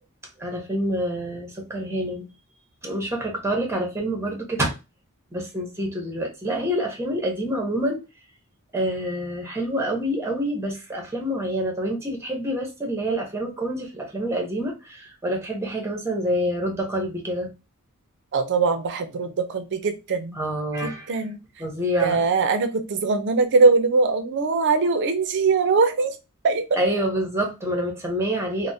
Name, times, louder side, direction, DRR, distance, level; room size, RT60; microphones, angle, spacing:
voice 1, 0.4-2.3 2.8-4.7 5.3-8.0 8.7-17.5 20.3-21.1 21.6-22.2 26.8-28.7, equal, 10° right, 1 dB, 0.8 m, -27 dB
voice 2, 18.3-20.4 20.8-21.4 22.0-26.2 26.4-26.6, right 4 dB, 50° right, 8 dB, 0.5 m, -21 dB
3.4 x 2.1 x 2.6 m, 0.27 s
head